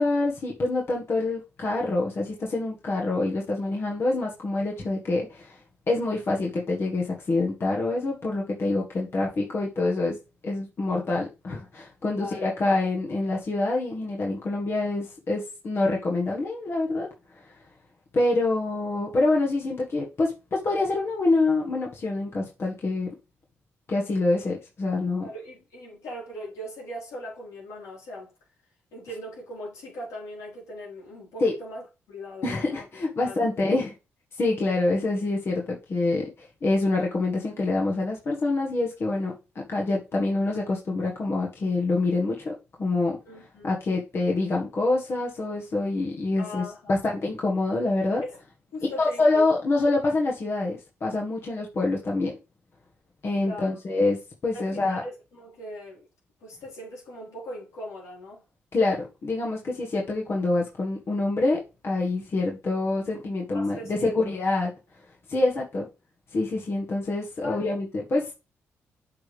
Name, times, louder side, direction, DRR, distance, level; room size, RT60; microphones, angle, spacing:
voice 1, 0.0-5.6 5.9-10.2 10.4-17.1 17.3-17.5 18.1-23.1 23.9-25.3 31.4-31.5 32.4-33.9 34.4-36.3 36.6-43.2 43.6-48.2 49.0-52.3 53.2-54.2 54.4-55.0 58.7-64.7 65.3-65.9 66.3-68.3, left 2 dB, 50° left, 1.7 m, -26 dB
voice 2, 12.1-12.9 25.2-28.3 28.9-32.8 33.2-33.5 43.3-43.8 46.4-47.0 48.2-48.4 48.7-49.4 53.4-53.8 54.5-56.1 56.4-58.4 63.5-64.3 67.4-67.8, equal, 85° left, 4.3 m, -39 dB
7.9 x 5.2 x 3.5 m
cardioid pair, 65°, 5 cm